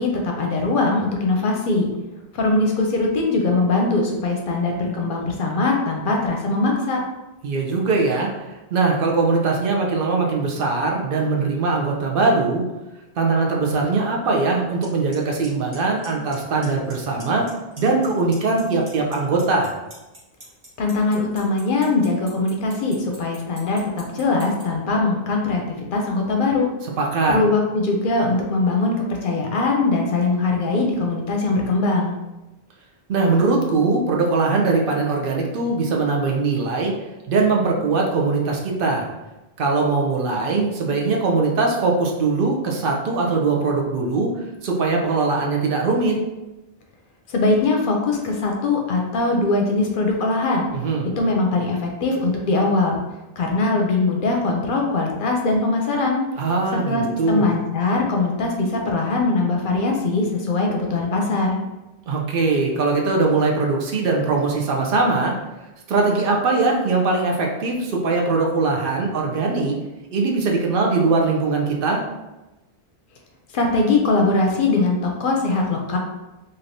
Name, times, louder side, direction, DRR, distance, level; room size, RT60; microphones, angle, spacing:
voice 1, 0.0-1.9 2.3-7.0 20.8-25.6 25.9-26.7 27.3-32.1 47.3-50.7 51.2-53.0 53.4-56.2 56.9-61.6 73.5-76.0, left 3 dB, 65° left, 1 dB, 0.7 m, -21 dB
voice 2, 7.4-12.7 13.2-17.5 17.8-19.7 27.0-27.4 33.1-37.0 37.3-39.1 39.6-44.3 44.6-46.2 50.7-51.1 56.4-57.5 62.1-65.4 65.9-69.7 70.1-72.0, right 3 dB, 65° right, 0 dB, 0.7 m, -21 dB
Clock, 14.8-14.9 15.1-15.5 15.7-16.3 16.6-16.9 17.2-18.1 18.3-24.6, right 1 dB, 50° right, 1.1 m, -42 dB
3.2 x 2.6 x 2.6 m, 1.0 s
omnidirectional pair, 1.0 m